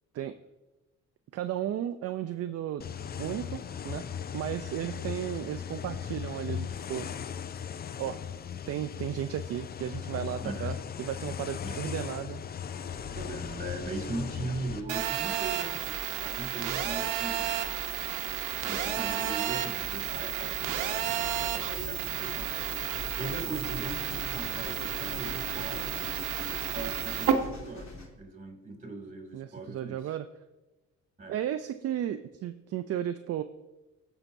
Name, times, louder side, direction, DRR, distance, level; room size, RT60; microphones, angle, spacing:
voice 1, 1.3-2.8 3.2-4.1 4.3-7.1 8.0-8.2 8.7-12.4 23.2-23.4 29.3-30.3 31.3-33.4, right 11 dB, 55° right, 9 dB, 0.4 m, -34 dB
sound 1, 2.8-14.8, left 8 dB, 35° left, 0.4 m, -38 dB
voice 2, 10.4-10.7 11.6-11.8 13.1-17.8 18.6-22.7 23.2-26.0 26.6-30.0 31.2-31.4, right 2 dB, 25° right, 3 dB, 2.4 m, -40 dB
sound 2, 13.8-28.1, left 2 dB, 65° left, 2.9 m, -44 dB
Telephone, 14.9-27.3, right 9 dB, 85° right, 0.9 m, -32 dB
16.0 x 5.7 x 2.6 m, 1.1 s
cardioid pair, 90°, 30 cm